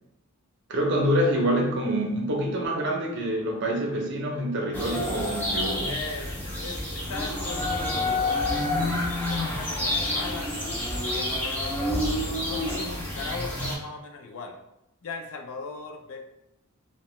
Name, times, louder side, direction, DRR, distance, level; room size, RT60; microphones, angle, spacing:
voice 1, 0.7-5.9, equal, 55° right, 1 dB, 0.6 m, -26 dB
sound 1, 4.7-13.8, left 1 dB, 10° left, 0.5 m, -28 dB
voice 2, 5.8-10.6 11.0-14.6 15.0-16.2, left 4 dB, 65° left, 4 dB, 0.4 m, -38 dB
2.8 x 2.1 x 3.0 m, 0.85 s
head